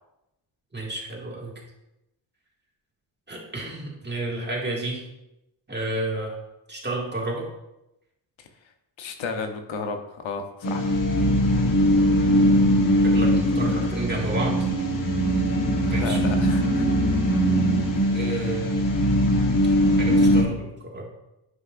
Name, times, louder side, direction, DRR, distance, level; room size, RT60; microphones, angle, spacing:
voice 1, 0.7-1.6 3.3-5.0 5.7-6.3 6.7-7.5 13.0-14.7 15.9-16.2 18.1-18.8 20.0-21.0, right 2 dB, 25° right, -3 dB, 2.1 m, -31 dB
voice 2, 9.0-10.9 15.8-16.8, left 4 dB, 80° left, 6 dB, 0.9 m, -33 dB
sound 1, 10.6-20.4, equal, 45° left, 1.3 m, -21 dB
9.9 x 5.4 x 2.5 m, 0.90 s
cardioid pair, 85°, 46 cm